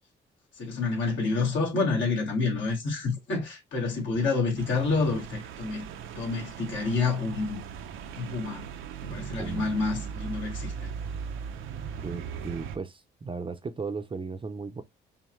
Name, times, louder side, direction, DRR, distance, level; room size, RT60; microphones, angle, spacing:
voice 1, 0.6-5.9 6.2-7.6 8.2-8.6 9.0-10.9, left 4 dB, 70° left, 2.1 m, -28 dB
sound 1, 4.6-12.8, right 7 dB, 85° right, 0.7 m, -38 dB
voice 2, 9.1-9.7 12.0-14.8, right 4 dB, 25° right, 0.6 m, -36 dB
5.6 x 2.1 x 3.1 m
cardioid pair, 90°, 20 cm